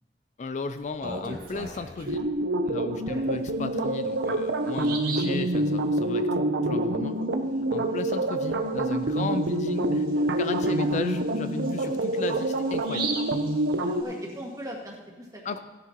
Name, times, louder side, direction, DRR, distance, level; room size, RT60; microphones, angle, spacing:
voice 1, 0.4-2.3 2.6-7.3 7.7-13.1 15.4-15.6, left 4 dB, 45° left, 9 dB, 0.4 m, -35 dB
Bird vocalization bird call bird song, 0.8-2.3 3.7-3.8 4.3-4.4 4.7-5.4 8.9-9.0 9.4-9.5 10.1-14.3, right 4 dB, 55° right, 1.8 m, -38 dB
sound 1, 2.1-14.0, right 1 dB, 80° right, 0.7 m, -27 dB
voice 2, 13.8-15.5, equal, 20° right, -3 dB, 1.9 m, -41 dB
15.0 x 10.0 x 3.0 m, 1.3 s
head